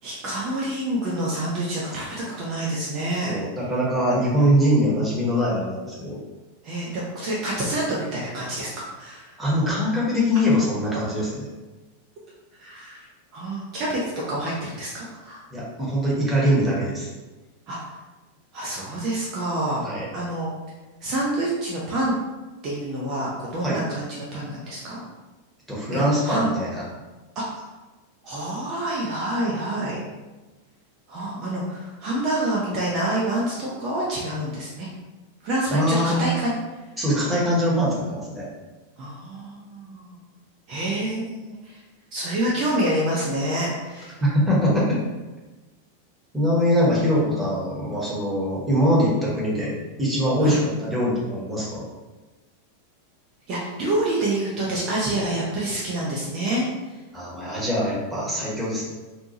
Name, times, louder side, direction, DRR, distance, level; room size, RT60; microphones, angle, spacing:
voice 1, 0.0-3.4 6.6-8.7 9.0-9.4 12.6-13.1 13.3-15.4 17.7-17.8 18.5-19.9 20.1-20.5 21.0-22.1 22.6-25.0 25.9-26.5 27.4-27.7 28.2-30.0 31.1-34.9 35.4-36.5 39.0-40.2 40.7-41.8 42.1-44.2 50.4-50.6 53.5-56.9, right 1 dB, 35° right, -5 dB, 0.5 m, -27 dB
voice 2, 3.2-6.2 9.4-11.4 15.5-17.1 19.8-20.1 23.6-23.8 25.7-26.8 35.7-36.3 37.0-38.5 44.2-45.0 46.3-51.8 57.1-58.8, equal, 5° right, -7 dB, 1.0 m, -22 dB
2.7 x 2.2 x 2.8 m, 1.2 s
figure-of-eight pair, 90°, 0 cm